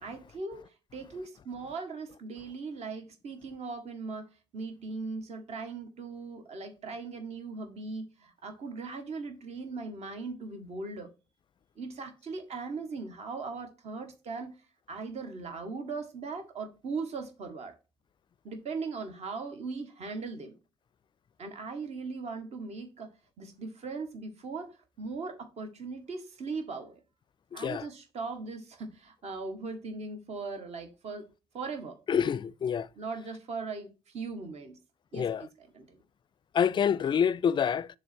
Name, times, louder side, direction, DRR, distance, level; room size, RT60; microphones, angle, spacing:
voice 1, 0.0-11.1 11.8-14.6 14.9-17.8 18.4-20.5 21.4-23.1 23.4-27.0 27.5-31.3 31.5-32.0 33.0-34.8 35.1-36.0, right 4 dB, 50° right, 1.5 m, -39 dB
voice 2, 27.5-27.9 32.1-32.9 35.1-35.5 36.5-37.9, left 8 dB, 35° left, 0.4 m, -27 dB
6.9 x 3.2 x 6.0 m
figure-of-eight pair, 45°, 14 cm